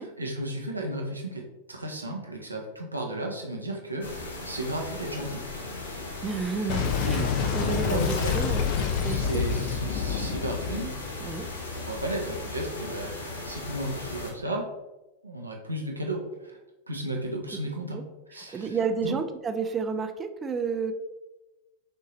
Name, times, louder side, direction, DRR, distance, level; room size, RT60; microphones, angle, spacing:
voice 1, 0.0-5.4 7.0-7.3 7.6-8.5 9.1-11.0 11.7-14.7 15.2-16.6 16.9-18.0 18.3-18.8 19.0-19.2, right 1 dB, 85° right, 0 dB, 0.7 m, -34 dB
sound 1, 4.0-14.3, left 2 dB, 70° left, 0.9 m, -38 dB
voice 2, 6.2-7.3 7.5-8.7 9.0-9.4 11.2-11.5 17.9-18.0 18.5-20.9, right 5 dB, 20° right, 7 dB, 0.4 m, -31 dB
Boom, 6.7-11.9, left 7 dB, 45° left, 0.6 m, -28 dB
6.4 x 2.7 x 3.0 m, 1.1 s
figure-of-eight pair, 90°, 0 cm